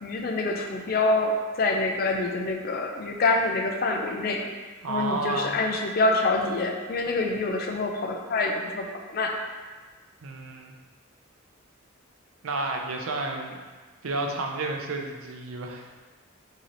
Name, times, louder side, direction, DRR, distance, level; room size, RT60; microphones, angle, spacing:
voice 1, 0.0-4.5 4.9-8.9 9.1-9.4 13.5-13.6, left 2 dB, 45° left, 3 dB, 0.4 m, -26 dB
voice 2, 4.8-5.6 10.2-10.7 12.4-13.5 14.0-15.9, right 2 dB, 85° right, 2 dB, 0.5 m, -31 dB
3.1 x 2.8 x 3.8 m, 1.4 s
head